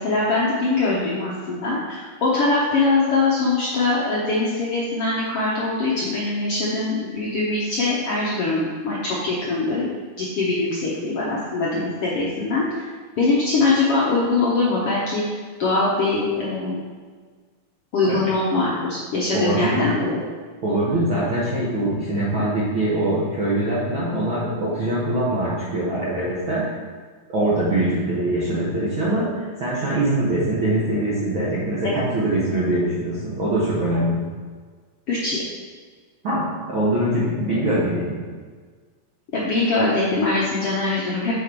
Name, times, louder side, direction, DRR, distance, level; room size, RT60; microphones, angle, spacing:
voice 1, 0.0-9.9 10.2-12.7 13.2-16.8 17.9-20.2 31.8-32.1 35.1-35.4 39.3-41.4, left 3 dB, 70° left, -6 dB, 1.4 m, -22 dB
voice 2, 19.3-19.8 20.6-26.8 27.3-34.3 36.2-38.3, right 1 dB, 60° right, -8 dB, 1.3 m, -23 dB
7.0 x 5.0 x 4.6 m, 1.5 s
omnidirectional pair, 3.9 m